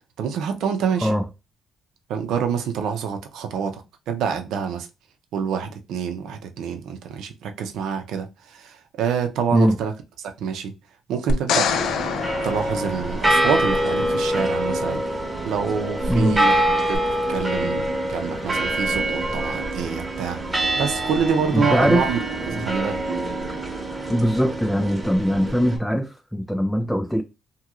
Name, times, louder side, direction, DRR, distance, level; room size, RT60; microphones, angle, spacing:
voice 1, 0.2-1.1 2.1-4.9 5.3-9.9 10.2-10.7 11.1-11.7 12.4-15.0 15.4-16.6 16.9-17.0 17.3-20.4 20.7-22.2 22.5-23.0, right 6 dB, 85° right, 0.5 m, -26 dB
sound 1, 11.3-13.6 16.9-17.0, left 6 dB, 75° left, 0.4 m, -25 dB
sound 2, 11.7-25.8, right 1 dB, 15° right, 1.0 m, -25 dB
voice 2, 16.1-16.4 21.5-22.2 22.5-22.6 24.1-27.2, equal, 5° left, 0.3 m, -21 dB
3.0 x 2.8 x 2.4 m
cardioid pair, 90°, 0 cm